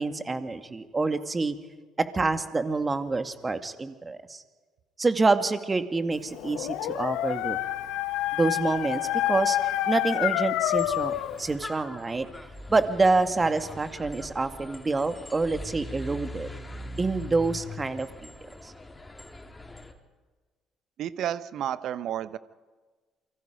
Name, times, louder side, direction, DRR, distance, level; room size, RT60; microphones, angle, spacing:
voice 1, 0.0-1.5 2.1-4.4 5.0-7.6 8.4-9.0 9.3-9.6 9.9-12.3 12.7-16.5 17.0-18.3 18.6-18.7, right 3 dB, 25° right, 9 dB, 2.2 m, -27 dB
Dog, 6.3-11.4, left 14 dB, 70° left, 1.0 m, -28 dB
sound 1, 10.7-19.9, left 1 dB, 15° left, 3.5 m, -42 dB
voice 2, 21.0-22.4, right 10 dB, 60° right, 15 dB, 1.0 m, -31 dB
28.0 x 24.0 x 5.3 m, 1.4 s
hypercardioid pair, 50°, 0 cm